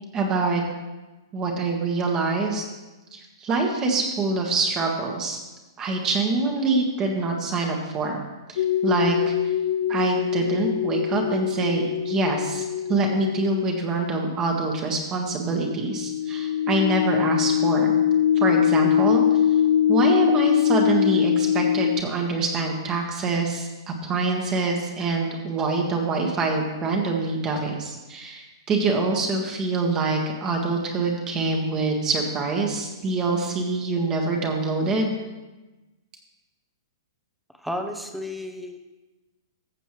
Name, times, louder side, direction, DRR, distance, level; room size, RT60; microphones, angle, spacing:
voice 1, 0.1-0.6 1.3-2.6 3.1-5.4 5.8-8.2 8.5-9.3 9.9-17.9 18.4-19.2 19.9-35.1, right 3 dB, 25° right, 1 dB, 1.5 m, -25 dB
sound 1, 8.6-14.1 15.6-22.0, left 10 dB, 60° left, 0.4 m, -22 dB
voice 2, 37.6-38.8, left 1 dB, ahead, 5 dB, 0.9 m, -32 dB
14.5 x 7.0 x 3.2 m, 1.1 s
hypercardioid pair, 120°, 2 cm